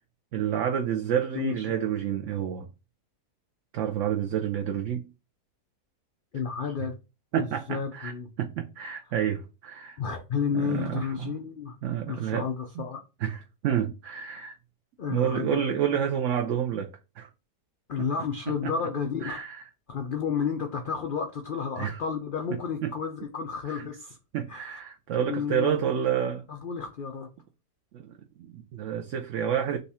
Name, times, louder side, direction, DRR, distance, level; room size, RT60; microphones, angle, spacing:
voice 1, 0.3-2.7 3.7-5.1 7.3-8.1 8.4-10.0 10.5-11.4 11.8-12.5 12.8-12.9 13.2-14.6 15.1-16.9 17.2-17.3 18.6-18.7 19.2-19.6 21.8-22.0 22.5-22.9 23.7-23.9 24.3-26.5 27.9-29.8, right 9 dB, 65° right, 0.8 m, -29 dB
voice 2, 1.3-1.7 6.3-6.9 7.3-8.3 10.0-11.8 12.1-13.0 15.0-15.6 17.9-19.4 19.9-24.2 24.5-24.7 25.2-25.8 26.5-27.3, left 6 dB, 75° left, 0.4 m, -31 dB
5.3 x 2.4 x 4.1 m
omnidirectional pair, 1.7 m